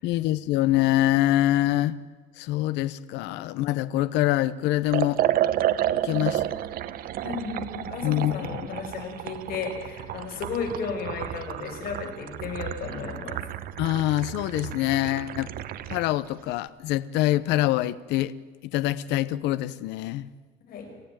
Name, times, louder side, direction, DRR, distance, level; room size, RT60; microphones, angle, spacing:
voice 1, 0.0-2.0 2.4-5.2 6.0-6.4 8.0-8.3 13.8-15.5 15.9-18.3 18.7-20.3, left 15 dB, 80° left, 16 dB, 0.9 m, -24 dB
Liquid, 4.9-16.1, right 12 dB, 55° right, 1.1 m, -31 dB
voice 2, 7.2-13.4 20.7-20.9, left 5 dB, 55° left, 4 dB, 6.4 m, -34 dB
28.5 x 15.0 x 9.0 m, 1.5 s
cardioid pair, 145°, 18 cm